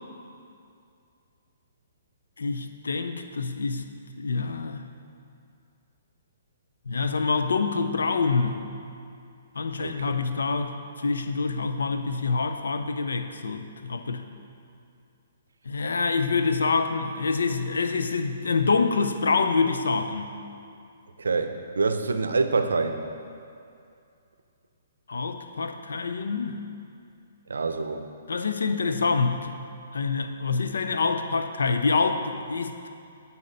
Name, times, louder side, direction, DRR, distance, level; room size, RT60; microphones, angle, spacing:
voice 1, 2.4-4.9 6.9-8.6 9.5-14.2 15.7-20.4 25.1-26.6 28.3-29.6 29.9-32.9, left 4 dB, 75° left, 8 dB, 0.5 m, -26 dB
voice 2, 21.2-23.0 27.5-28.1, right 4 dB, 80° right, 7 dB, 0.5 m, -26 dB
8.6 x 4.2 x 5.1 m, 2.5 s
hypercardioid pair, 130°, 0 cm